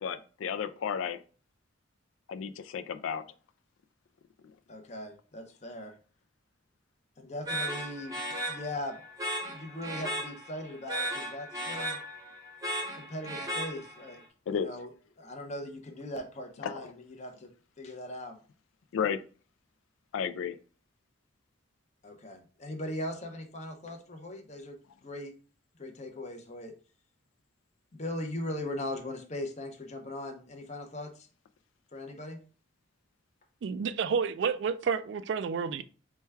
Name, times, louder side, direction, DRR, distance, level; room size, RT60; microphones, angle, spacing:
voice 1, 0.0-1.2 2.3-3.2 14.5-14.7 16.6-16.7 18.9-19.2 20.1-20.6, left 7 dB, 80° left, 0.3 m, -32 dB
voice 2, 4.7-5.9 7.2-8.2 8.5-9.0 9.4-12.0 12.9-14.2 14.5-14.9 15.2-17.5 17.8-18.4 22.0-25.3 25.8-26.7 27.9-31.3 31.9-32.4, left 1 dB, 35° left, 0.6 m, -39 dB
sound 1, 7.4-14.2, equal, 20° right, 0.7 m, -36 dB
voice 3, 33.6-35.8, right 6 dB, 60° right, 0.3 m, -30 dB
4.5 x 2.2 x 3.3 m
head